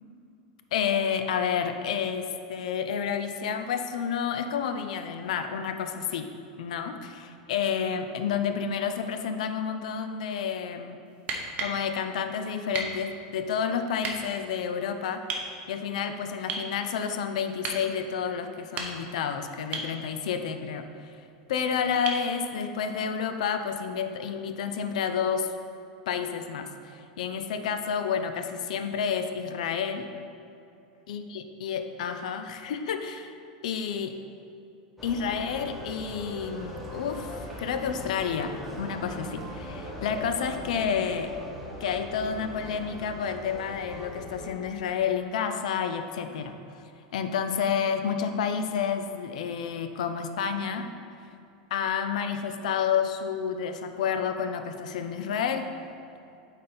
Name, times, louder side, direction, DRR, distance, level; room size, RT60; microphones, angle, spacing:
voice 1, 0.7-6.3 6.6-11.0 11.6-15.3 15.7-21.1 21.5-25.5 26.1-30.1 31.1-33.3 33.6-34.1 35.0-41.3 41.8-46.6 47.1-50.9 51.7-55.7, left 7 dB, 80° left, 8 dB, 0.5 m, -30 dB
sound 1, 11.2-11.8 12.7-13.0 14.0-14.2 15.3-15.5 16.5-16.7 17.6-17.8 18.6-19.2 19.7-19.9 22.1-22.3 24.1-24.2, right 3 dB, 35° right, 0.9 m, -33 dB
sound 2, 35.0-44.5, equal, ahead, 1.2 m, -40 dB
8.6 x 4.2 x 4.0 m, 2.7 s
supercardioid pair, 130°, 4 cm